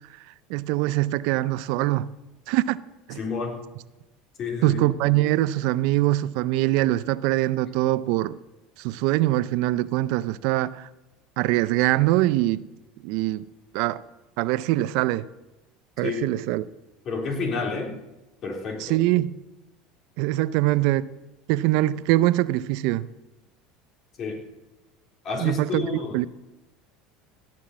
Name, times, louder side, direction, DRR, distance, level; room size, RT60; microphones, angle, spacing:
voice 1, 0.1-2.1 2.5-2.8 3.1-3.2 4.6-8.4 8.8-10.9 11.4-12.7 13.0-13.4 13.7-14.0 14.4-15.3 16.0-16.7 18.8-19.3 20.2-21.1 21.5-23.1 25.4-26.3, right 16 dB, 70° right, 0.4 m, -23 dB
voice 2, 3.2-3.6 4.4-4.8 16.0-16.2 17.1-18.0 18.4-19.0 24.2-24.4 25.2-26.3, left 4 dB, 45° left, 3.8 m, -30 dB
17.0 x 6.1 x 7.4 m
supercardioid pair, 95°, 0 cm